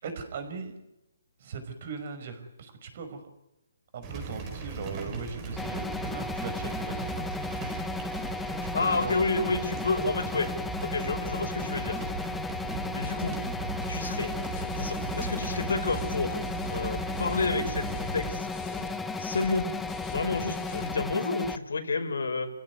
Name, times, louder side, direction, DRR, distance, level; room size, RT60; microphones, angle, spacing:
voice 1, 0.0-0.8 1.4-3.2 3.9-7.5 8.6-9.3, right 5 dB, 45° right, 8 dB, 5.6 m, -39 dB
sound 1, 4.0-18.4, right 4 dB, 20° right, 5.0 m, -38 dB
sound 2, 5.6-21.6, left 3 dB, 5° left, 0.9 m, -35 dB
voice 2, 8.7-10.5 10.8-12.0 12.9-13.4 13.9-14.3 14.7-16.4 16.7-17.9 18.1-18.5 19.2-19.7 20.1-22.5, left 3 dB, 85° left, 6 dB, 5.4 m, -30 dB
sound 3, 11.9-20.9, left 5 dB, 20° left, 4.9 m, -45 dB
29.0 x 16.0 x 9.7 m, 0.91 s
hypercardioid pair, 160°, 0 cm